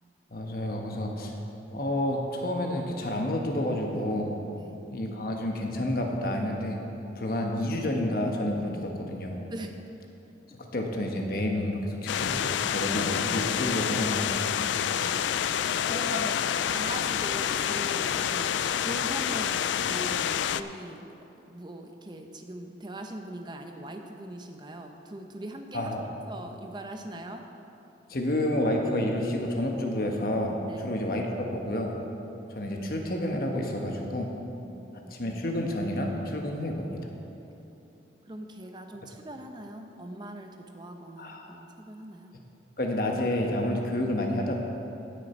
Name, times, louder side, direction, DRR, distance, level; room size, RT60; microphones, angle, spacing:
voice 1, 0.3-1.3 1.7-4.4 4.9-6.8 7.2-9.4 10.7-14.3 25.7-26.1 28.1-31.9 32.5-34.3 35.1-37.0 41.2-41.6 42.8-44.6, left 1 dB, 50° left, 1 dB, 1.1 m, -29 dB
voice 2, 4.6-4.9 9.5-9.8 14.6-15.2 15.9-21.0 21.5-26.0 26.3-27.5 30.7-31.0 34.6-35.1 38.3-42.3, right 1 dB, 25° right, 4 dB, 0.7 m, -41 dB
sound 1, 12.1-20.6, left 9 dB, 80° left, 0.3 m, -28 dB
16.5 x 6.7 x 4.4 m, 3.0 s
head